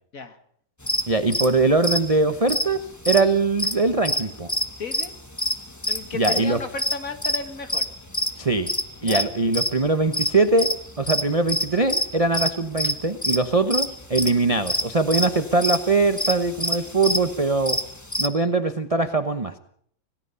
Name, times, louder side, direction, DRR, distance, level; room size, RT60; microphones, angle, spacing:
sound 1, 0.8-4.2 4.5-9.7 10.1-12.5 12.8-13.0 13.2-13.4 13.7-18.3, left 1 dB, 10° left, 0.9 m, -26 dB
voice 1, 1.1-2.8 3.1-4.5 6.1-6.6 8.4-8.7 9.0-10.7 11.0-17.8 18.2-19.5, right 3 dB, 35° right, 8 dB, 0.6 m, -22 dB
voice 2, 4.8-5.1 5.9-7.9 9.0-9.3 12.8-12.9, left 4 dB, 45° left, 8 dB, 2.0 m, -34 dB
26.5 x 17.5 x 5.6 m, 0.63 s
omnidirectional pair, 2.2 m